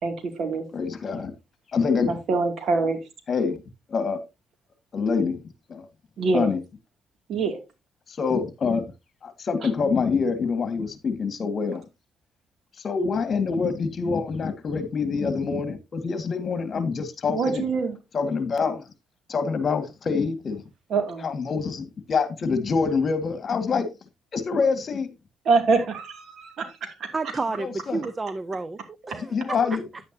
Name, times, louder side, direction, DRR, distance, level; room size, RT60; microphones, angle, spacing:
voice 1, 0.0-0.6 2.1-3.0 6.2-6.5 7.3-7.6 9.6-9.7 17.3-18.0 20.9-21.3 25.4-27.1 29.0-29.2, right 4 dB, 65° right, 2.5 m, -25 dB
voice 2, 0.7-1.3 1.7-2.2 3.3-3.6 3.9-4.2 4.9-5.4 5.7-5.9 6.3-6.6 8.1-8.9 9.2-11.8 12.8-17.6 18.1-18.9 19.3-20.6 21.2-23.9 24.3-25.1 27.6-28.0 29.2-29.8, left 5 dB, 45° left, 1.8 m, -26 dB
voice 3, 27.1-28.8 29.1-29.8, right 3 dB, 25° right, 0.6 m, -30 dB
10.0 x 9.0 x 2.8 m
cardioid pair, 90°, 0 cm